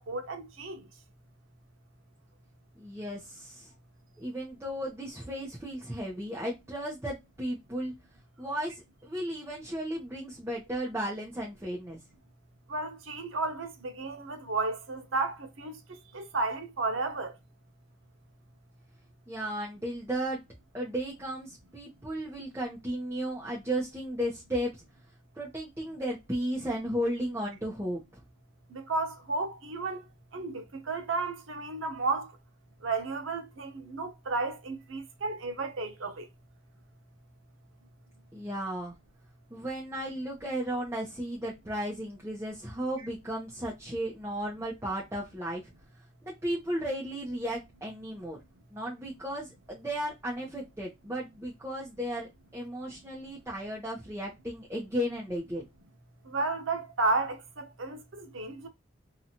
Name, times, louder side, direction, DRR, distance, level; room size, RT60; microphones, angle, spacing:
voice 1, 0.1-0.8 12.7-15.7 16.1-17.3 28.7-30.0 30.3-32.3 32.8-36.3 56.2-58.7, right 3 dB, 90° right, 0.7 m, -33 dB
voice 2, 2.8-3.7 4.2-7.9 8.4-12.0 19.3-20.4 20.7-24.8 25.4-28.0 38.3-38.9 39.5-45.6 46.2-48.4 48.7-55.6, equal, 15° right, 0.6 m, -34 dB
2.8 x 2.3 x 2.7 m
head